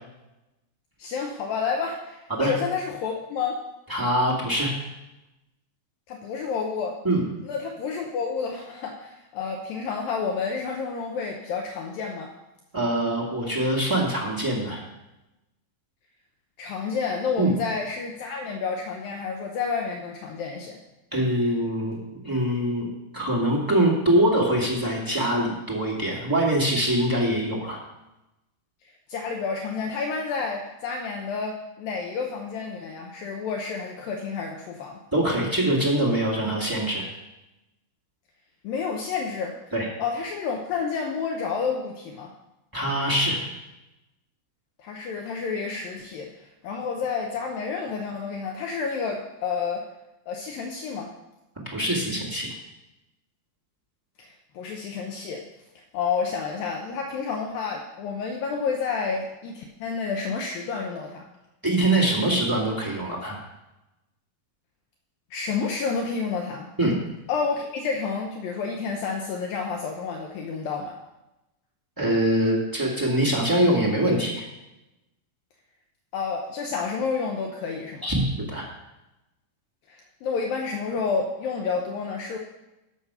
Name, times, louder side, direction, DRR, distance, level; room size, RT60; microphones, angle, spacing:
voice 1, 1.0-3.6 6.1-7.0 7.5-12.3 16.6-20.8 29.1-35.0 38.6-39.6 40.0-42.3 44.8-49.9 50.3-51.1 54.2-55.4 55.9-61.3 65.3-66.7 67.3-71.0 76.1-78.1 79.9-82.4, left 5 dB, 75° left, 1 dB, 2.4 m, -30 dB
voice 2, 3.9-4.7 7.0-7.2 12.7-14.8 17.4-17.5 21.1-22.9 23.1-27.8 35.1-37.0 39.7-39.9 42.7-43.4 51.6-52.5 61.6-63.4 66.8-66.9 72.0-74.5 78.0-78.2 78.5-78.6, right 1 dB, 15° right, -5 dB, 0.6 m, -23 dB
13.0 x 6.3 x 5.6 m, 0.97 s
omnidirectional pair, 4.5 m